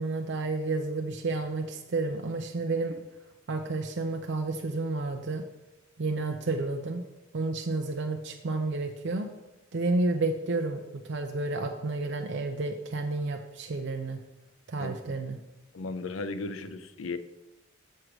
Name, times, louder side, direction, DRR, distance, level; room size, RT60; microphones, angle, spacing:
voice 1, 0.0-3.0 3.5-5.4 6.0-7.0 7.3-9.3 9.7-14.2 14.7-15.4, right 3 dB, 60° right, 4 dB, 0.5 m, -31 dB
voice 2, 15.7-17.2, left 3 dB, 80° left, 10 dB, 0.5 m, -35 dB
6.4 x 4.7 x 6.0 m, 0.98 s
head